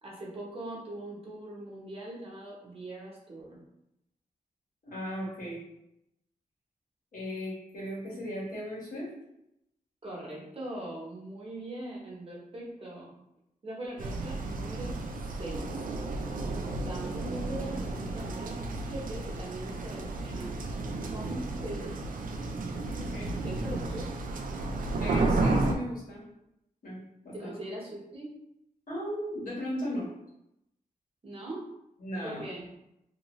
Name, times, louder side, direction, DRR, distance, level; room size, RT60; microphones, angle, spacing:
voice 1, 0.0-3.6 10.0-13.2 13.6-15.0 15.4-15.7 16.8-18.6 18.8-20.5 21.1-22.0 23.4-24.2 27.3-28.3 31.2-31.7 32.2-32.7, right 1 dB, 40° right, -4 dB, 0.9 m, -41 dB
voice 2, 4.8-5.6 7.1-9.1 23.0-23.3 25.0-26.2 26.8-27.5 28.9-30.1 32.0-32.4, equal, 75° left, -6 dB, 1.4 m, -36 dB
sound 1, 14.0-25.8, right 2 dB, 75° right, 0.4 m, -32 dB
2.8 x 2.5 x 3.0 m, 0.85 s
wide cardioid pair, 130°, 14 cm